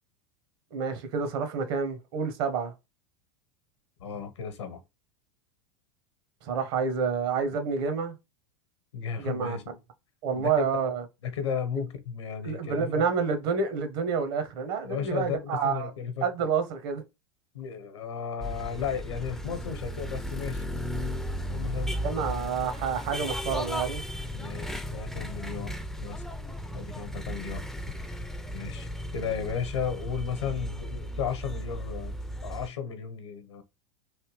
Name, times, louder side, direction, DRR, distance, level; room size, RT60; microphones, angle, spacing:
voice 1, 0.7-2.7 6.4-8.1 9.2-9.6 10.2-11.0 12.4-15.9 16.2-17.0 22.0-24.0, right 5 dB, 60° right, 0.9 m, -28 dB
voice 2, 4.0-4.8 8.9-9.8 10.3-10.9 11.2-13.0 14.8-16.3 17.5-20.7 21.5-22.0 24.3-26.2 26.7-27.6 28.5-32.2 32.4-33.6, left 7 dB, 75° left, 0.9 m, -34 dB
sound 1, 18.4-32.7, equal, ahead, 0.4 m, -35 dB
3.4 x 2.8 x 2.9 m
figure-of-eight pair, 85°, 15 cm